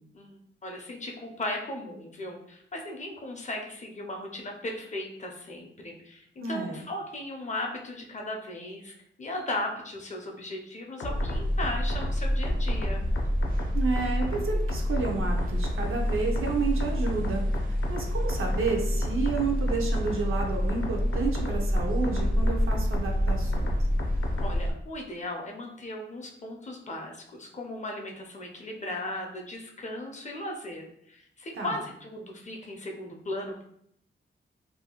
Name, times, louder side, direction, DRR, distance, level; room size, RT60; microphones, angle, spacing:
voice 1, 0.1-13.1 24.4-33.6, left 1 dB, 35° left, 1 dB, 0.5 m, -37 dB
voice 2, 6.4-6.8 13.7-17.4 17.9-23.7 31.5-31.7, right 4 dB, 85° right, 1 dB, 0.6 m, -31 dB
sound 1, 11.0-24.6, left 1 dB, 90° left, 0.5 m, -28 dB
sound 2, 11.1-24.7, equal, 45° right, 0.5 m, -33 dB
2.6 x 2.3 x 2.8 m, 0.72 s
wide cardioid pair, 130°, 21 cm